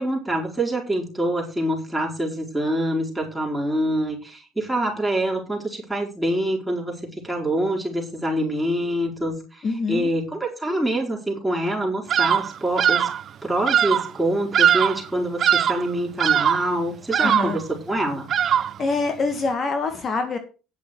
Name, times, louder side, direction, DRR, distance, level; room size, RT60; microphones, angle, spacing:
voice 1, 0.0-9.6 9.9-13.1 13.4-18.3, right 1 dB, 5° right, -1 dB, 4.6 m, -25 dB
voice 2, 9.6-10.1 17.2-17.6 18.8-20.4, left 4 dB, 40° left, 7 dB, 1.9 m, -25 dB
Bird vocalization bird call bird song, 12.1-12.5 12.8-13.2 13.7-14.1 14.5-15.1 15.4-15.9 16.2-16.7 17.1-17.6 18.3-18.8, right 9 dB, 50° right, 0.5 m, -20 dB
10.0 x 6.5 x 6.3 m, 0.34 s
supercardioid pair, 95°, 0 cm